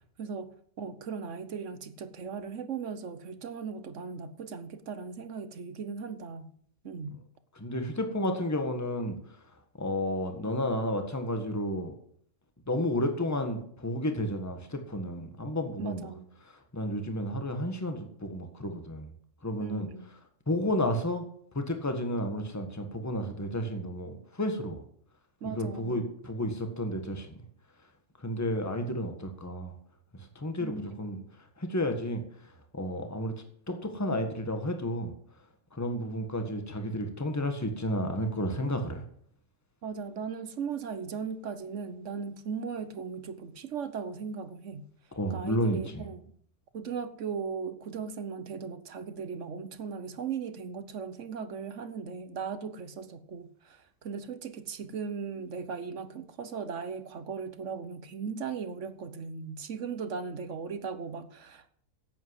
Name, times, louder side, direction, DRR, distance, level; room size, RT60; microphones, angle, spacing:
voice 1, 0.2-0.5 0.8-6.5 6.8-7.2 15.8-16.3 19.6-20.1 25.4-26.0 30.6-31.0 39.8-44.9 45.3-46.3 46.7-61.7, right 6 dB, 55° right, 1.2 m, -38 dB
voice 2, 7.6-9.2 9.8-11.9 12.7-16.0 16.7-19.1 19.4-19.9 20.5-21.3 21.5-24.8 25.4-27.3 28.2-29.7 30.3-31.2 31.6-32.2 32.7-33.3 33.7-35.1 35.7-39.0 45.2-46.0, left 1 dB, 10° left, 1.5 m, -31 dB
11.0 x 8.5 x 8.1 m
omnidirectional pair, 1.6 m